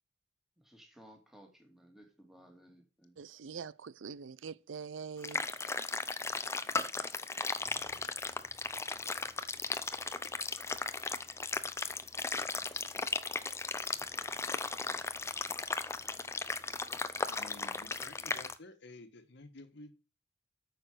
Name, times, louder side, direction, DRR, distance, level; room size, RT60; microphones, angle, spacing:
voice 1, 0.6-3.1, equal, ahead, 2.6 m, -58 dB
voice 2, 3.2-5.4, right 6 dB, 70° right, 0.5 m, -44 dB
sound 1, 5.2-18.5, left 3 dB, 15° left, 0.6 m, -36 dB
voice 3, 17.3-19.9, left 3 dB, 60° left, 1.6 m, -52 dB
8.8 x 6.7 x 6.4 m
head